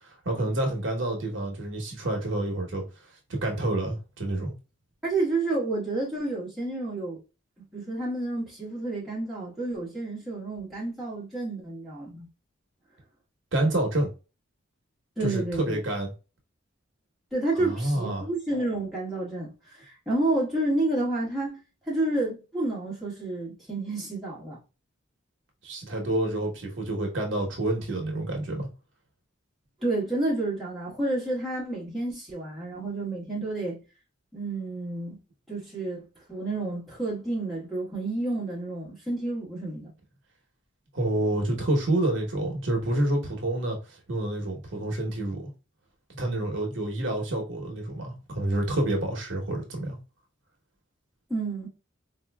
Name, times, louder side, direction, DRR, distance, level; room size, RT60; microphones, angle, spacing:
voice 1, 0.0-2.8 3.3-4.5 13.5-14.1 15.2-16.1 17.6-18.3 25.6-28.7 40.9-45.5 46.1-50.0, right 1 dB, 60° right, 0.9 m, -28 dB
voice 2, 5.0-7.2 7.7-12.3 15.2-15.8 17.3-24.6 29.8-33.8 34.3-35.2 35.5-39.9 51.3-51.7, right 2 dB, ahead, 1.5 m, -30 dB
4.1 x 2.6 x 2.2 m
head